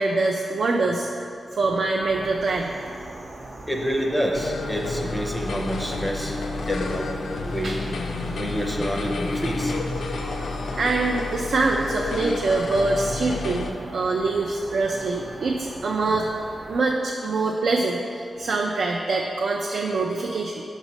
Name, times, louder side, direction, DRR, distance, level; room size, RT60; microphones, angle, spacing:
voice 1, 0.0-2.9 5.1-5.5 7.6-7.8 8.7-8.8 10.3-16.3 16.7-20.6, right 3 dB, 75° right, 0 dB, 0.4 m, -25 dB
sound 1, 2.0-16.8, right 1 dB, 50° right, 0.7 m, -39 dB
voice 2, 3.7-6.4 6.7-7.1 7.4-7.8 8.4-9.9, equal, ahead, 0 dB, 0.5 m, -28 dB
sound 2, 4.3-13.7, left 3 dB, 80° left, 0.3 m, -30 dB
6.3 x 3.1 x 5.2 m, 2.5 s
wide cardioid pair, 145°, 0 cm